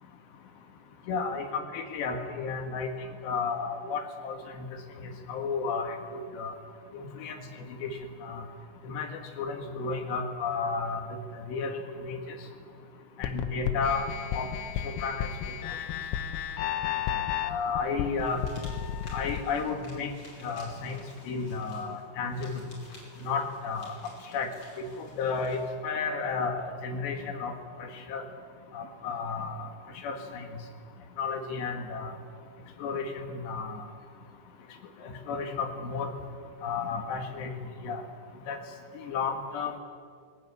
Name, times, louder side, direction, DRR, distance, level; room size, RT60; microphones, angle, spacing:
voice 1, 1.1-4.7 5.0-6.0 6.4-6.5 6.9-7.4 7.8-8.4 8.8-12.4 13.2-14.1 14.3-14.5 14.8-15.3 17.4-18.4 19.1-20.1 20.4-22.5 23.2-24.5 24.8-27.5 27.8-28.2 28.7-29.7 30.0-30.5 31.2-32.1 32.8-33.9 35.0-36.1 36.6-37.5 37.8-38.0 38.5-38.6 39.0-39.8, left 5 dB, 65° left, 5 dB, 3.6 m, -33 dB
sound 1, 13.2-19.4, left 10 dB, 90° left, 4.0 m, -33 dB
sound 2, 18.2-25.7, left 1 dB, 25° left, 5.9 m, -53 dB
21.0 x 19.5 x 9.7 m, 2.1 s
omnidirectional pair, 6.0 m